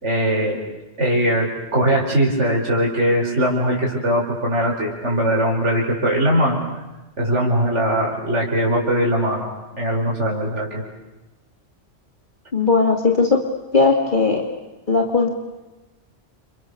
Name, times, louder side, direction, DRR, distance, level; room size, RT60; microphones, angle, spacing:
voice 1, 0.0-0.6 1.0-6.6 7.2-9.5 9.8-10.8, equal, 85° right, -1 dB, 5.3 m, -20 dB
voice 2, 12.5-13.4 13.7-14.4 14.9-15.3, left 4 dB, 45° left, 2 dB, 2.6 m, -17 dB
30.0 x 29.0 x 6.8 m, 1.1 s
omnidirectional pair, 1.2 m